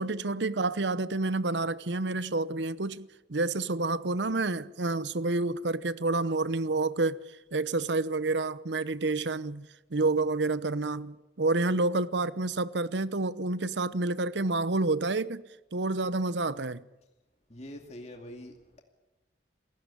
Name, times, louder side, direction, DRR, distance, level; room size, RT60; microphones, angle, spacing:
voice 1, 0.0-7.2 7.5-15.4 15.7-16.8, right 2 dB, 90° right, 0.9 m, -29 dB
voice 2, 17.5-18.8, left 1 dB, 40° left, 2.4 m, -44 dB
29.0 x 16.5 x 9.8 m
head